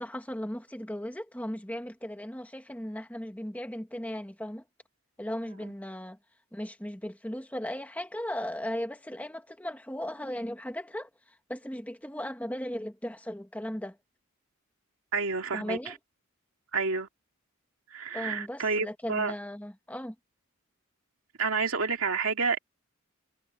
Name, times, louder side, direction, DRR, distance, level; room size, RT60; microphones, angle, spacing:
voice 1, 0.0-4.6 5.2-6.2 6.5-14.0 15.5-16.0 18.1-20.1, equal, 5° left, 1.5 m, -37 dB
voice 2, 15.1-15.9 16.7-17.1 17.9-19.3 21.4-22.6, right 4 dB, 85° right, 2.3 m, -29 dB
head